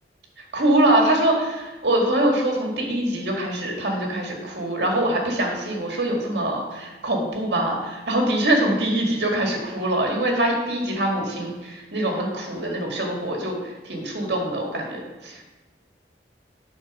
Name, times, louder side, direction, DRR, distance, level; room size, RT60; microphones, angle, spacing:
voice 1, 0.4-15.4, right 1 dB, 65° right, 0 dB, 1.9 m, -24 dB
8.8 x 4.3 x 6.0 m, 1.2 s
head